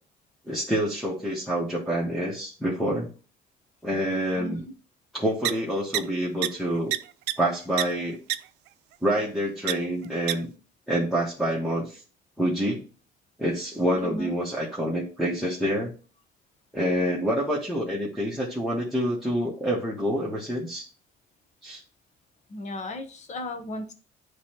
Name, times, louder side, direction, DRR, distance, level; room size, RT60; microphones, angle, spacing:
voice 1, 0.5-3.1 3.8-4.7 5.1-6.9 7.4-8.2 9.0-10.5 10.9-12.0 12.4-12.8 13.4-15.9 16.7-20.9 21.6-21.8, equal, ahead, -5 dB, 1.6 m, -27 dB
sound 1, 5.4-5.5 5.9-6.0 6.4-6.5 6.9-7.0 7.3-7.4 7.8-7.9 8.3-8.4 9.7-9.8 10.3-10.4, right 15 dB, 85° right, 0.4 m, -24 dB
voice 2, 14.0-14.3 22.5-23.9, left 1 dB, 45° left, 7 dB, 1.2 m, -35 dB
9.6 x 3.3 x 3.0 m, 0.36 s
cardioid pair, 110°, 17 cm